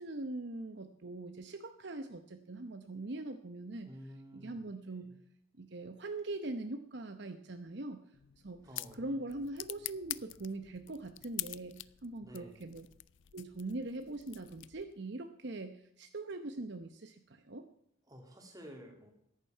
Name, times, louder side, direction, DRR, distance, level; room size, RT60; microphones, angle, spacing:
voice 1, 0.0-3.9 4.3-5.1 5.6-8.0 8.4-8.6 9.0-12.9 13.3-17.7, right 2 dB, 55° right, 7 dB, 0.8 m, -42 dB
voice 2, 3.8-5.2 8.6-9.3 12.2-12.7 18.1-19.1, equal, 20° right, 2 dB, 2.7 m, -52 dB
sound 1, 8.1-15.0, left 17 dB, 60° left, 0.4 m, -46 dB
14.0 x 10.5 x 5.7 m, 0.71 s
head